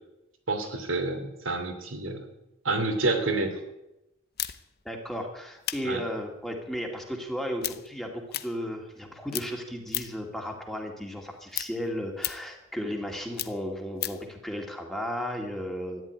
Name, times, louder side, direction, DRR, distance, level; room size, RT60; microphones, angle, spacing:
voice 1, 0.5-2.2 2.6-3.6 5.8-6.0, right 2 dB, 80° right, 6 dB, 2.9 m, -28 dB
sound 1, 4.4-9.0 9.3-10.3 10.7-14.3, left 14 dB, 50° left, 0.8 m, -36 dB
voice 2, 4.8-16.0, equal, ahead, 1 dB, 2.3 m, -34 dB
14.0 x 11.0 x 9.5 m, 0.91 s
head